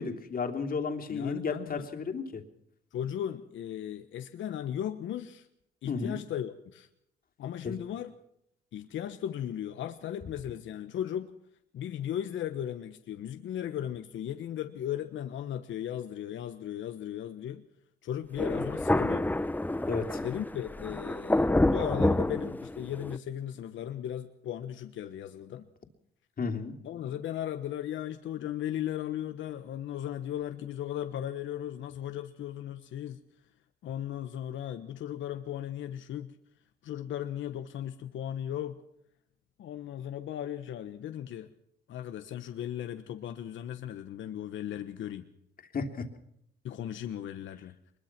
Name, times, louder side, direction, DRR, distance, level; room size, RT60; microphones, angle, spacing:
voice 1, 0.0-2.4 5.9-6.2 7.6-7.7 19.9-20.2 26.4-26.7 45.7-46.0, left 5 dB, 45° left, 4 dB, 3.0 m, -33 dB
voice 2, 1.1-1.9 2.9-5.5 5.8-6.9 7.4-8.1 8.7-11.3 11.7-17.6 18.0-19.3 20.2-25.7 26.8-33.2 33.8-36.4 36.8-38.8 39.6-41.5 41.9-45.3 46.6-47.8, left 10 dB, 75° left, 8 dB, 1.2 m, -36 dB
Thunder, 18.4-23.2, left 1 dB, 10° left, 0.8 m, -28 dB
23.0 x 21.5 x 6.0 m, 0.75 s
cardioid pair, 90°, 20 cm